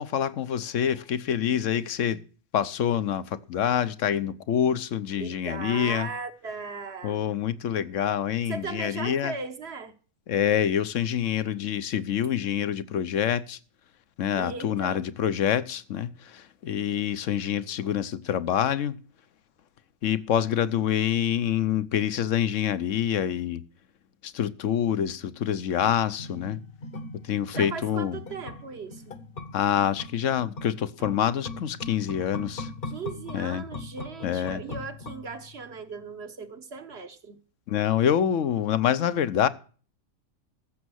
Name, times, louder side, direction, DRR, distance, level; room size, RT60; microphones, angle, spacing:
voice 1, 0.0-2.2 2.5-6.1 7.0-9.3 10.3-13.6 14.2-19.0 20.0-23.6 24.2-26.6 27.2-28.2 29.5-32.7 33.3-33.6 34.2-34.6 37.7-39.5, left 9 dB, 65° left, 1.1 m, -26 dB
voice 2, 5.2-7.2 8.5-9.9 14.4-15.0 27.5-29.2 32.9-37.4, right 5 dB, 50° right, 1.3 m, -37 dB
sound 1, 26.2-35.7 36.0-36.1, left 2 dB, 45° left, 1.1 m, -40 dB
14.5 x 7.2 x 6.3 m
omnidirectional pair, 1.5 m